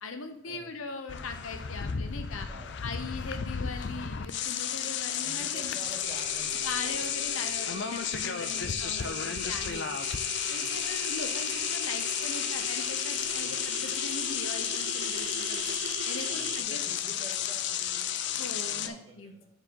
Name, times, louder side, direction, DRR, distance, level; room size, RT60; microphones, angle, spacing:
voice 1, 0.0-2.5 2.8-5.8 6.6-9.9 10.5-15.6 16.1-16.8 18.3-19.3, left 3 dB, 80° left, 7 dB, 0.9 m, -40 dB
sound 1, 1.1-18.9, left 9 dB, 55° left, 0.4 m, -32 dB
voice 2, 2.5-2.8 5.2-7.1 7.4-7.6 8.3-8.8 10.4-10.7 13.2-13.5 16.2-19.5, right 2 dB, 25° right, -4 dB, 2.1 m, -49 dB
sound 2, 6.0-16.6, right 9 dB, 65° right, 0.3 m, -40 dB
6.9 x 4.6 x 5.2 m, 0.67 s
head